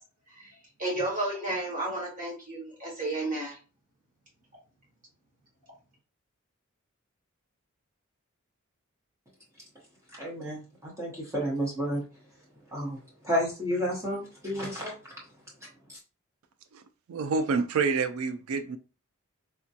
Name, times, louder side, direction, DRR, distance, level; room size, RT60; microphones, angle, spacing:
voice 1, 0.8-3.6, right 2 dB, 40° right, 1.5 m, -32 dB
voice 2, 10.2-12.0 12.7-13.0 13.2-15.0 15.9-16.0, equal, 15° right, 0.8 m, -31 dB
voice 3, 17.1-18.8, right 4 dB, 90° right, 0.4 m, -28 dB
3.4 x 2.2 x 2.7 m
head